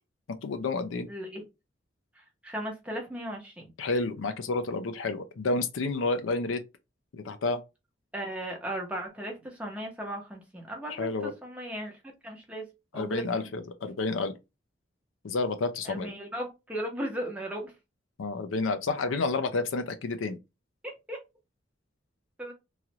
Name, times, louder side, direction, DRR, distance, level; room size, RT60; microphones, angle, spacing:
voice 1, 0.4-1.1 3.8-6.6 7.1-7.6 10.9-11.3 12.9-14.3 15.2-16.1 18.2-20.4, left 3 dB, 90° left, 0.5 m, -30 dB
voice 2, 1.1-1.4 2.1-3.7 8.1-12.0 12.2-12.7 12.9-13.5 13.8-13.9 15.8-17.7 20.8-21.2 22.4-22.5, right 1 dB, 5° right, 0.9 m, -37 dB
3.1 x 2.4 x 2.8 m
head